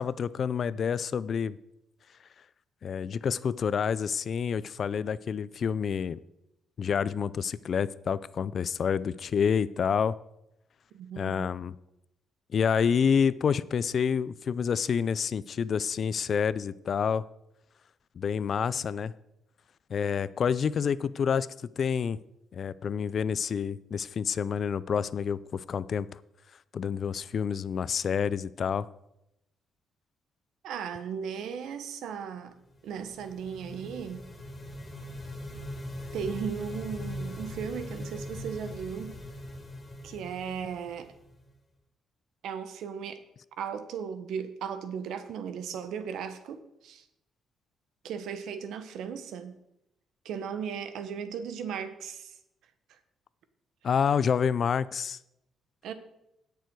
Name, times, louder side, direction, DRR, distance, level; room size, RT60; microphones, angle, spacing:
voice 1, 0.0-1.6 2.8-6.2 6.8-10.2 11.2-11.7 12.5-17.2 18.2-19.1 19.9-21.5 21.8-22.2 22.5-26.1 26.7-28.9 53.8-55.2, left 7 dB, 40° left, 18 dB, 0.3 m, -28 dB
voice 2, 10.9-11.5 30.6-32.6 32.8-34.2 36.1-39.2 40.0-41.1 42.4-43.2 43.6-47.0 48.0-49.6 50.2-52.3 55.8-55.9, right 7 dB, 75° right, 10 dB, 1.1 m, -36 dB
sound 1, 32.7-41.5, left 1 dB, 10° left, 1.8 m, -41 dB
17.0 x 6.9 x 4.6 m, 0.84 s
cardioid pair, 170°, 0 cm